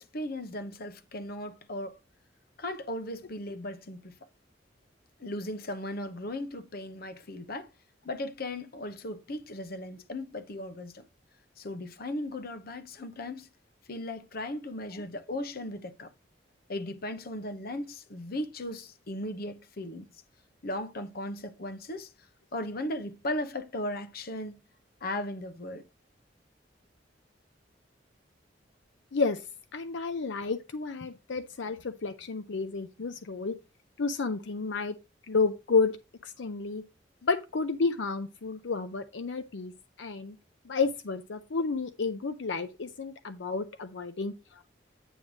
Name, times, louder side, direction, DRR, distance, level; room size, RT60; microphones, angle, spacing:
voice 1, 0.0-1.9 2.6-4.1 5.2-7.7 8.0-11.0 11.6-13.5 13.9-16.1 16.7-20.1 20.6-22.1 22.5-24.5 25.0-25.8, left 1 dB, 55° left, 0.9 m, -37 dB
voice 2, 29.1-29.4 29.7-33.5 34.0-35.0 35.3-35.9 36.2-36.8 37.2-39.7 40.0-40.4 40.6-44.7, left 4 dB, 80° left, 0.6 m, -31 dB
9.0 x 3.2 x 6.2 m
head